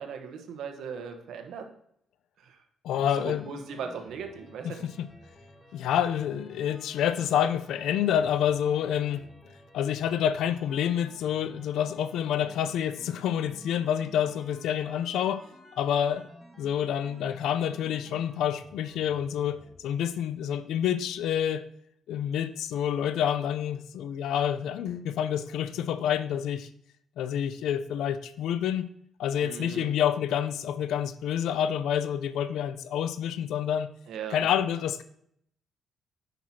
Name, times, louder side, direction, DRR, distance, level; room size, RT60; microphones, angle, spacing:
voice 1, 0.0-1.7 2.4-2.6 3.1-4.9 29.4-29.9 34.1-34.4, right 6 dB, 75° right, 5 dB, 1.0 m, -38 dB
voice 2, 2.8-3.5 4.6-5.1 5.7-9.2 9.7-15.4 15.7-16.2 16.6-21.6 22.1-26.7 27.2-28.8 29.2-33.9 34.3-35.0, left 9 dB, 80° left, 13 dB, 0.5 m, -28 dB
sound 1, 2.9-20.0, left 1 dB, 10° left, 1.4 m, -52 dB
9.1 x 6.0 x 2.8 m, 0.70 s
cardioid pair, 90°, 0 cm